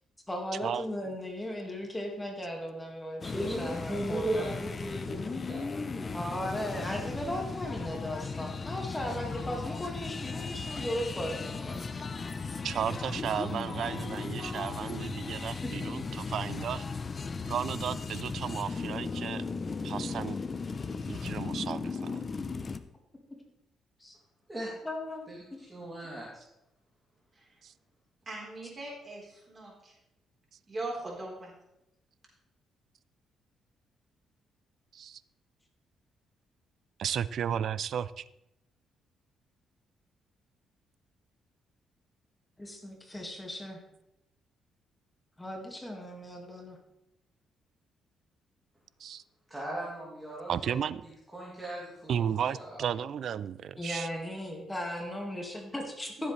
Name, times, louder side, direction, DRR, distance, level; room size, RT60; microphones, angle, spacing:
voice 1, 0.3-4.4 6.1-11.9 15.6-15.9 24.0-24.2 24.8-25.3 42.6-43.8 45.4-46.8 53.8-56.3, left 1 dB, 15° left, 1 dB, 2.0 m, -37 dB
sound 1, 3.2-22.8, left 4 dB, 35° left, 0.7 m, -36 dB
voice 2, 3.3-6.3 24.5-24.7 25.3-25.4 25.7-26.4 49.5-50.7 51.3-52.8, right 1 dB, 10° right, -6 dB, 2.8 m, -37 dB
voice 3, 4.9-5.3 12.6-16.8 17.5-19.4 19.8-20.4 21.1-22.2 27.6-27.7 34.9-35.2 37.0-38.2 49.0-49.2 50.5-51.0 52.1-54.1, right 8 dB, 65° right, 18 dB, 0.4 m, -34 dB
voice 4, 28.3-29.9 30.7-31.5, right 2 dB, 30° right, -2 dB, 4.0 m, -40 dB
15.0 x 7.6 x 3.3 m, 0.88 s
cardioid pair, 90°, 0 cm